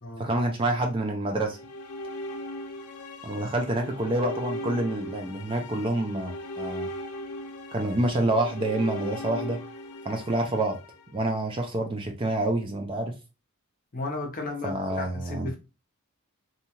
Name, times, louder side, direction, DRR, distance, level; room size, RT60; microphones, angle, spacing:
voice 1, 0.2-1.6 3.2-6.9 7.7-9.6 10.0-10.8 11.1-13.1 14.6-15.5, right 1 dB, 25° right, 0.4 m, -27 dB
sound 1, 1.4-11.6, left 1 dB, 80° left, 0.5 m, -38 dB
voice 2, 13.9-15.6, left 2 dB, 40° left, 0.7 m, -34 dB
2.7 x 2.3 x 2.9 m
head